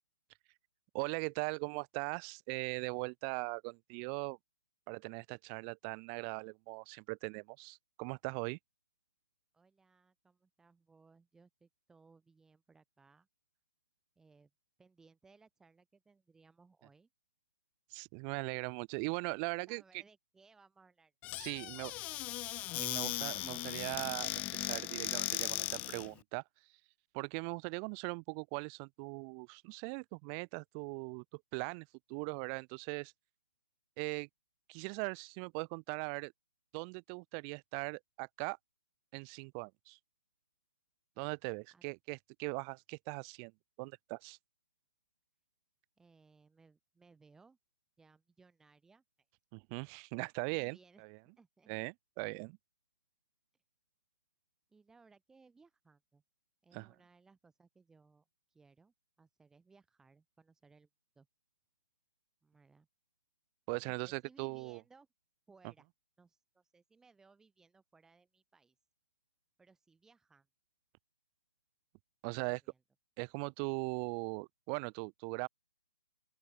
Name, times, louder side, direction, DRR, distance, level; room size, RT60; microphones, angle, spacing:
voice 1, 0.9-4.4 4.9-8.6 17.9-20.0 21.4-21.9 22.8-26.4 27.1-33.1 34.0-34.3 34.7-36.3 36.7-38.6 39.1-40.0 41.2-43.5 43.8-44.4 49.5-51.2 51.7-52.6 56.7-56.9 63.7-64.8 72.2-72.6 73.2-75.5, right 40 dB or more, 20° right, 0.7 m, -40 dB
voice 2, 9.5-13.3 14.2-14.5 14.8-17.1 19.7-21.1 21.5-22.4 41.7-41.8 46.0-47.6 48.0-49.0 50.5-51.8 54.7-56.2 56.6-60.9 61.1-61.3 62.4-62.9 63.8-65.1 65.5-65.9 66.2-68.7 69.6-70.5 72.3-72.8, right 4 dB, 5° right, 4.8 m, -65 dB
Squeak / Cupboard open or close, 21.2-26.1, left 17 dB, 15° left, 0.4 m, -38 dB
open air
hypercardioid pair, 150°, 9 cm